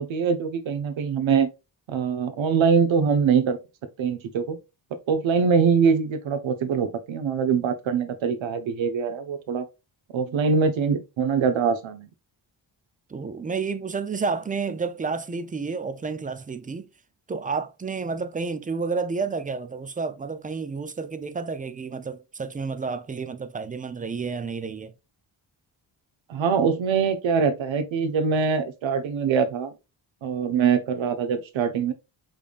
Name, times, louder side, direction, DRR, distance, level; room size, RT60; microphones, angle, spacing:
voice 1, 0.0-1.5 1.9-3.6 4.0-4.6 5.1-9.6 10.1-12.1 26.3-29.7 30.2-31.9, right 6 dB, 85° right, 0.8 m, -23 dB
voice 2, 13.1-16.9 17.3-24.9, right 4 dB, 20° right, 0.3 m, -30 dB
5.1 x 3.4 x 2.4 m
wide cardioid pair, 110°, 46 cm